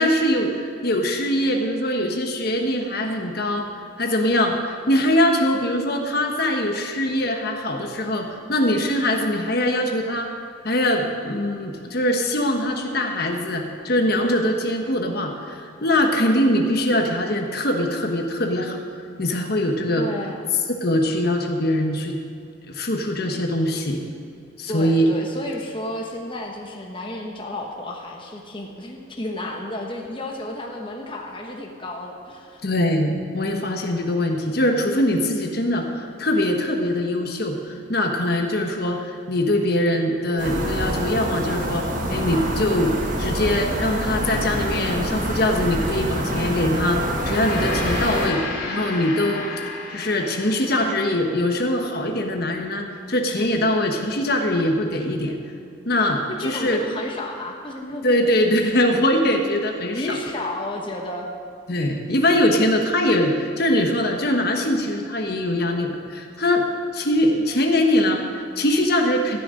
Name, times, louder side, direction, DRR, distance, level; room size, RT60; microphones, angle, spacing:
voice 1, 0.0-3.7 4.0-10.3 10.6-18.8 19.2-20.0 20.8-22.2 22.7-24.0 24.6-25.1 32.6-41.8 42.1-49.4 49.9-55.4 55.8-56.8 58.0-60.2 61.7-66.7 66.9-69.4, left 1 dB, 50° left, 3 dB, 1.3 m, -22 dB
voice 2, 20.0-20.5 24.7-32.6 56.3-58.0 59.9-61.3, left 1 dB, 25° left, 0 dB, 1.2 m, -32 dB
sound 1, 40.4-48.3, right 1 dB, 40° right, 1.5 m, -26 dB
Gong, 47.0-51.6, left 3 dB, 85° left, 3.2 m, -33 dB
14.5 x 6.4 x 9.9 m, 2.5 s
head